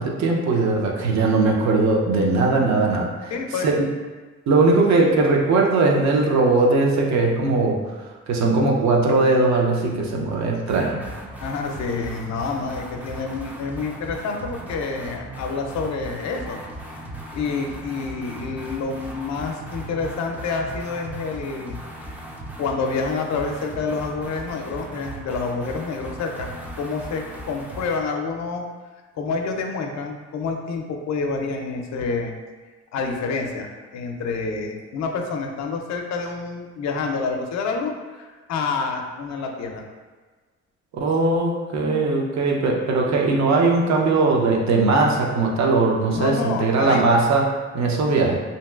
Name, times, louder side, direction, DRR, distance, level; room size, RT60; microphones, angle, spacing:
voice 1, 0.0-3.3 3.6-3.9 4.5-7.8 8.3-11.1 40.9-48.4, right 3 dB, 65° right, 0 dB, 0.6 m, -19 dB
voice 2, 3.3-3.7 11.4-16.6 17.3-21.8 22.6-26.5 26.8-28.7 29.2-32.3 32.9-39.9 46.1-47.1, left 4 dB, 65° left, 3 dB, 0.5 m, -28 dB
sound 1, 10.7-28.1, right 1 dB, 5° right, 0.3 m, -37 dB
2.9 x 2.7 x 2.3 m, 1.3 s
cardioid pair, 90°, 30 cm